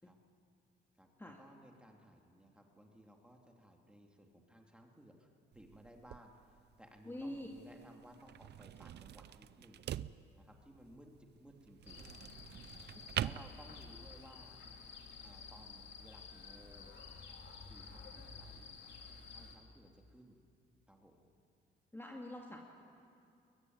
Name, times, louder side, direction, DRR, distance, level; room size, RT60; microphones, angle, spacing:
voice 1, 1.0-9.8 10.4-12.1 13.2-14.6 15.2-16.9 17.6-18.7 19.3-20.4 20.9-21.2, equal, 5° right, 2 dB, 2.9 m, -59 dB
sound 1, 5.5-14.2, right 11 dB, 60° right, 0.6 m, -45 dB
voice 2, 7.0-7.5 21.9-22.6, left 1 dB, 10° left, 0 dB, 2.2 m, -44 dB
sound 2, 11.9-19.6, left 5 dB, 60° left, 3.2 m, -52 dB
21.5 x 21.5 x 9.6 m, 2.5 s
cardioid pair, 90°, 20 cm